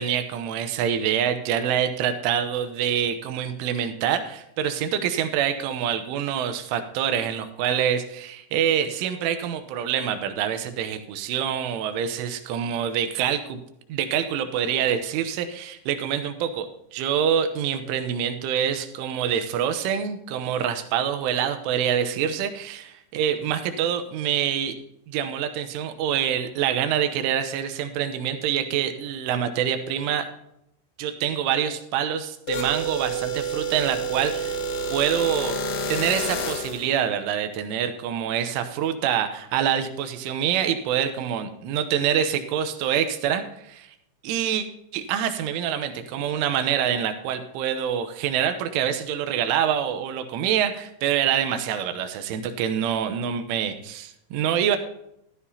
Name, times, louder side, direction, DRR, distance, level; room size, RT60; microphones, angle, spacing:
voice 1, 0.0-13.6 13.9-24.8 25.1-30.3 31.0-34.6 34.9-35.6 35.9-43.9 44.2-44.6 44.9-54.8, right 9 dB, 80° right, 8 dB, 3.2 m, -26 dB
sound 1, 32.5-36.9, right 2 dB, 70° left, 3.6 m, -28 dB
14.5 x 13.0 x 2.8 m, 0.77 s
omnidirectional pair, 6.0 m